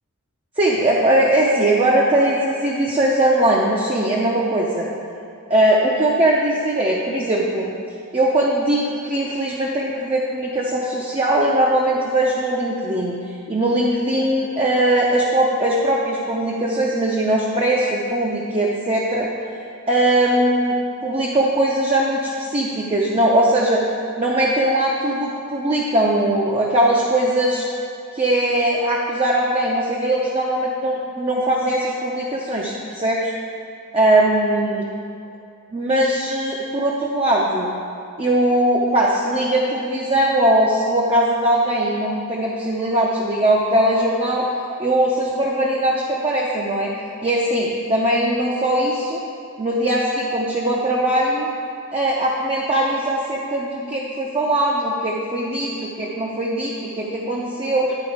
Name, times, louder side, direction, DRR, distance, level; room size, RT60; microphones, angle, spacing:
voice 1, 0.6-4.9 5.5-7.7 8.1-13.2 13.5-19.3 19.9-20.8 21.0-23.8 24.2-27.7 28.1-33.3 33.9-34.8 35.7-37.7 38.2-44.5 44.8-46.9 47.2-49.2 49.6-51.5 51.9-57.9, right 1 dB, 25° right, -4 dB, 0.6 m, -20 dB
9.5 x 4.3 x 4.8 m, 2.6 s
head